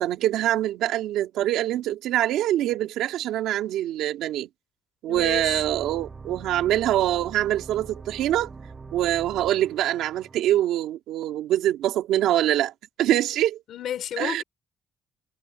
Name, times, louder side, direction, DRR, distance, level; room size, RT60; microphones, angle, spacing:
voice 1, 0.0-4.5 5.0-8.5 8.9-12.7 13.0-13.6 14.2-14.4, right 13 dB, 90° right, 2.5 m, -24 dB
voice 2, 5.1-5.6 13.7-14.4, left 10 dB, 70° left, 4.5 m, -32 dB
sound 1, 5.1-10.4, right 4 dB, 30° right, 6.3 m, -43 dB
cardioid pair, 90°, 0 cm